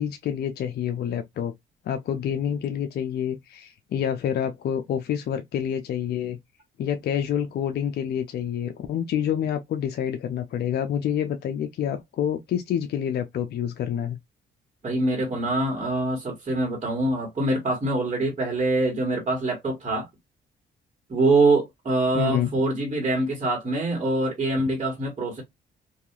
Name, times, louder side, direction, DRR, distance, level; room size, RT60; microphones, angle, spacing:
voice 1, 0.0-1.5 1.9-6.4 6.8-14.2 22.1-22.5, left 9 dB, 55° left, 0.4 m, -27 dB
voice 2, 14.8-20.1 21.1-25.4, right 2 dB, 35° right, 1.2 m, -24 dB
2.7 x 2.4 x 2.2 m
cardioid pair, 90°, 20 cm